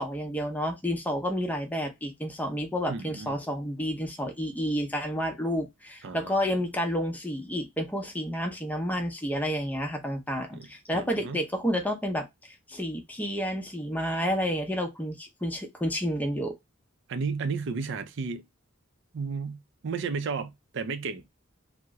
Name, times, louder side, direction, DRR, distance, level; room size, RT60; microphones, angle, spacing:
voice 1, 0.0-16.5, equal, 10° left, 0.6 m, -30 dB
voice 2, 2.9-3.3 6.0-6.5 10.5-10.7 10.9-11.4 17.1-18.4 19.1-21.2, right 5 dB, 60° right, 0.5 m, -33 dB
2.8 x 2.0 x 3.5 m
head